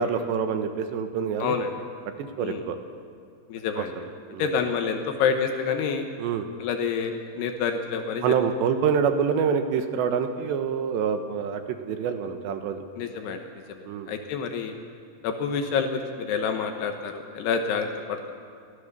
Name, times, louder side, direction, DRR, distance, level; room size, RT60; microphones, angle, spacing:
voice 1, 0.0-1.6 2.2-2.8 3.8-4.5 6.2-6.5 8.2-12.8 13.9-14.1, right 6 dB, 85° right, 7 dB, 3.5 m, -26 dB
voice 2, 3.5-3.9 4.4-6.1 6.6-8.4 13.0-13.4 13.7-14.7 15.2-18.3, left 6 dB, 75° left, 5 dB, 3.1 m, -28 dB
30.0 x 13.5 x 6.8 m, 2.4 s
omnidirectional pair, 4.9 m